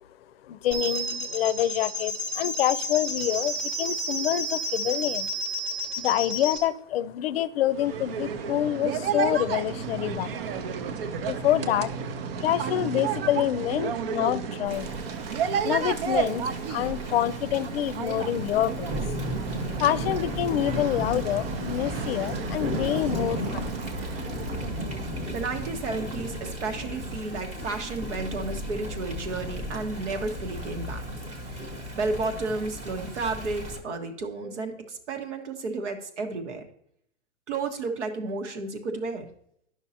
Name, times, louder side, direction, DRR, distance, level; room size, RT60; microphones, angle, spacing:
voice 1, 0.4-5.3 5.9-10.6 11.2-11.9 12.4-14.9 15.6-19.0 19.8-23.7, left 12 dB, 55° left, 17 dB, 0.5 m, -27 dB
sound 1, 0.7-6.6, equal, 5° left, 0.8 m, -31 dB
sound 2, 7.7-26.2, right 6 dB, 55° right, 0.7 m, -32 dB
Thunder / Rain, 14.7-33.8, equal, 20° right, 1.0 m, -35 dB
voice 2, 25.3-31.0 31.4-36.6 37.5-39.3, right 3 dB, 85° right, 5 dB, 1.5 m, -32 dB
10.5 x 6.0 x 2.8 m, 0.72 s
hypercardioid pair, 150°, 35 cm